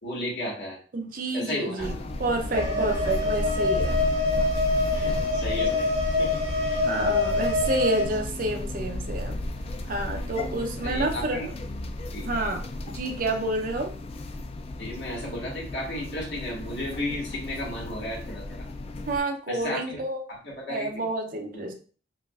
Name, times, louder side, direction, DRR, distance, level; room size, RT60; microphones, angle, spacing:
voice 1, 0.0-0.8 1.3-1.9 4.9-5.9 6.2-6.8 10.8-11.5 12.1-12.3 14.8-18.7 19.5-20.0 20.3-21.1, left 1 dB, 80° left, -4 dB, 1.7 m, -34 dB
voice 2, 0.9-4.0 6.8-9.4 9.9-11.4 12.2-13.9 19.1-20.2 20.7-21.7, right 2 dB, 50° right, 4 dB, 0.6 m, -29 dB
sound 1, 1.8-19.2, left 1 dB, 35° left, 0.3 m, -34 dB
sound 2, 2.5-8.0, left 2 dB, 75° right, 1.5 m, -26 dB
5.0 x 2.5 x 2.4 m, 0.40 s
head